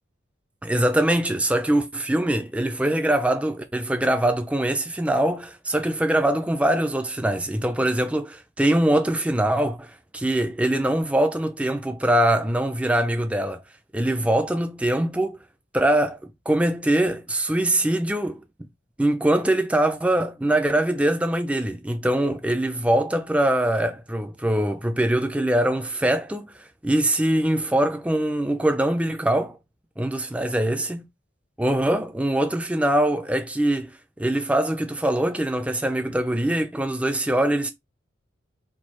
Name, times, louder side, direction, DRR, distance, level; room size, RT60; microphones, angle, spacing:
voice 1, 0.6-13.6 13.9-15.4 15.7-18.4 19.0-29.6 30.0-31.0 31.6-37.7, right 1 dB, 5° right, 0.4 m, -23 dB
4.4 x 2.3 x 4.2 m
head